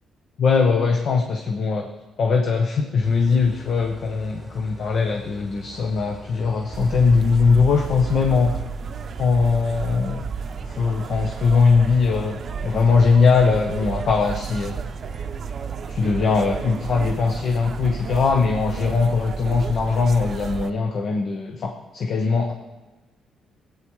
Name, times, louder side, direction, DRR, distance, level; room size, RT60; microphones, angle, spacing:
voice 1, 0.4-1.9 2.2-8.6 9.2-10.3 10.6-14.7 15.9-22.5, left 4 dB, 60° left, 3 dB, 0.9 m, -20 dB
Idling, 3.0-18.3, left 1 dB, 10° left, 2.1 m, -44 dB
sound 1, 6.7-20.7, right 6 dB, 55° right, 0.6 m, -32 dB
16.5 x 8.8 x 3.1 m, 1.2 s
cardioid pair, 90°, 0 cm